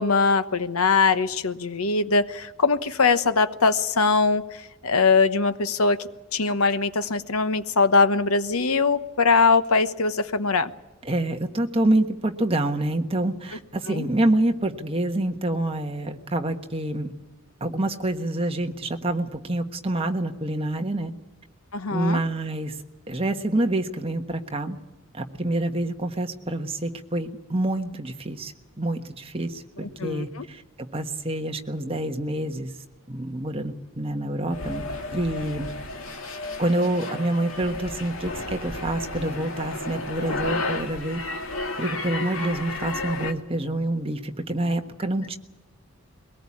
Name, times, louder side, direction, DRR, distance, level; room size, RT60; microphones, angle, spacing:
voice 1, 0.0-10.7 13.9-14.0 21.7-22.2 29.8-30.4, left 4 dB, 90° left, 12 dB, 1.1 m, -22 dB
voice 2, 11.0-17.1 17.6-21.1 21.9-22.8 23.1-24.8 25.1-30.6 30.9-32.7 33.1-34.9 35.1-35.7 36.6-41.2 41.8-45.4, right 1 dB, 25° right, 5 dB, 1.4 m, -27 dB
sound 1, 34.5-43.3, left 2 dB, 70° left, 2.2 m, -32 dB
22.5 x 18.5 x 8.6 m, 1.1 s
head